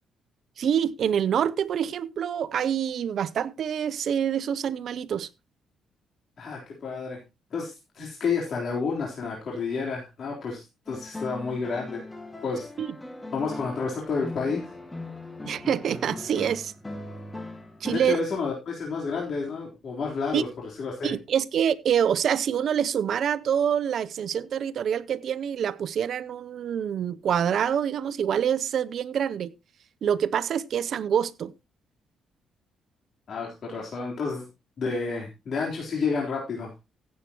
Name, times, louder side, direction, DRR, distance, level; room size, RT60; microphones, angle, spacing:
voice 1, 0.6-5.3 12.8-12.9 15.5-16.7 17.8-18.2 20.3-20.4 21.0-29.5 30.0-31.5, right 8 dB, 65° right, 0.7 m, -26 dB
voice 2, 6.4-7.2 7.5-12.0 12.4-12.7 13.3-14.7 17.9-20.5 20.8-21.1 33.3-34.5 34.8-36.7, left 4 dB, 55° left, 3.8 m, -30 dB
sound 1, 10.9-18.1, left 2 dB, 15° left, 1.9 m, -39 dB
15.5 x 8.3 x 3.0 m
cardioid pair, 90°, 0 cm